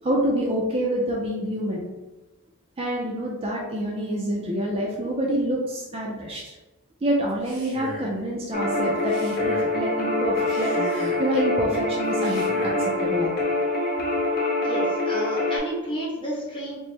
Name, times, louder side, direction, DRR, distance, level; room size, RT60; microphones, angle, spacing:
voice 1, 0.0-1.9 2.8-6.6 7.0-12.4 12.8-13.5, right 1 dB, 25° right, -3 dB, 0.4 m, -27 dB
Male speech man speaking, 7.3-8.2 9.0-9.8 10.4-11.3 12.1-12.9, right 1 dB, 55° right, 1.2 m, -38 dB
sound 1, 8.5-15.6, left 2 dB, 40° left, 0.6 m, -25 dB
voice 2, 14.6-16.8, right 1 dB, 20° left, -5 dB, 0.9 m, -31 dB
4.4 x 2.1 x 3.2 m, 1.1 s
head